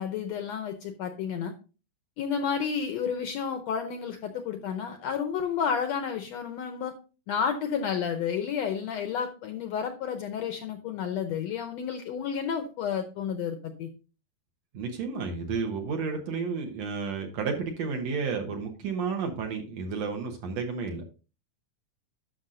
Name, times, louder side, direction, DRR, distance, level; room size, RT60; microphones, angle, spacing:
voice 1, 0.0-1.5 2.2-6.9 7.3-13.9, left 7 dB, 75° left, 7 dB, 1.6 m, -31 dB
voice 2, 14.7-21.0, right 5 dB, 65° right, 3 dB, 1.9 m, -31 dB
11.5 x 6.1 x 2.6 m, 0.33 s
omnidirectional pair, 3.8 m